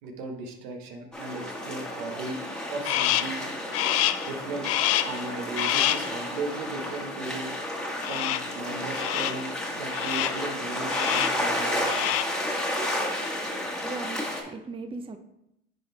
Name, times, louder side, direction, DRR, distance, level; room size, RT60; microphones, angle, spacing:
voice 1, 0.0-2.4 2.7-3.4 4.2-4.7 5.0-7.6 8.0-12.1, right 3 dB, 80° right, 3 dB, 1.2 m, -37 dB
sound 1, 1.1-14.4, left 1 dB, 5° left, 1.3 m, -32 dB
Crow, 2.8-3.4 3.7-4.3 4.6-5.2 5.6-6.1 8.0-8.6 8.9-9.5 9.9-10.5 10.9-11.5 11.8-12.4, left 13 dB, 50° left, 0.4 m, -27 dB
voice 2, 13.8-15.2, right 3 dB, 20° right, 8 dB, 0.6 m, -38 dB
9.7 x 3.5 x 3.2 m, 0.81 s
supercardioid pair, 90°, 30 cm